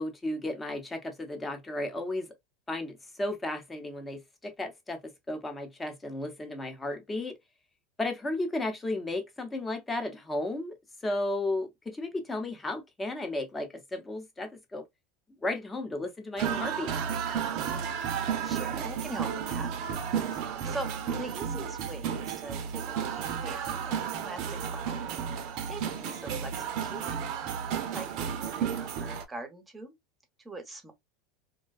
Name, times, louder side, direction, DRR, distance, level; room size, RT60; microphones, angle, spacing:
voice 1, 0.0-2.3 2.7-7.4 8.0-10.8 11.0-14.9 15.4-16.9, left 2 dB, 15° left, 0.8 m, -34 dB
sound 1, 16.4-29.2, right 8 dB, 60° right, 0.5 m, -33 dB
voice 2, 18.0-19.7 20.3-27.2 27.9-30.0 30.4-30.9, right 2 dB, 15° right, 0.8 m, -43 dB
2.6 x 2.2 x 2.3 m
hypercardioid pair, 100°, 0 cm